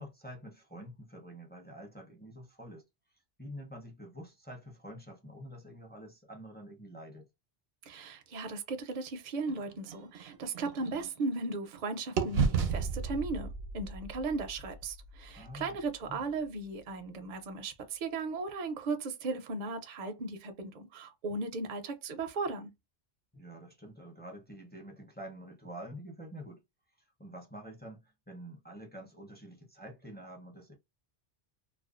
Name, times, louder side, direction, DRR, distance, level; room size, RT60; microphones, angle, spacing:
voice 1, 0.0-2.8 3.4-7.3 15.3-16.2 23.3-26.6 27.2-30.7, equal, 10° left, 0.5 m, -47 dB
voice 2, 7.9-13.5 13.7-22.7, right 3 dB, 55° right, 0.6 m, -36 dB
sound 1, 9.5-11.8 12.2-16.1, right 5 dB, 80° right, 0.8 m, -35 dB
2.4 x 2.2 x 2.4 m
omnidirectional pair, 1.0 m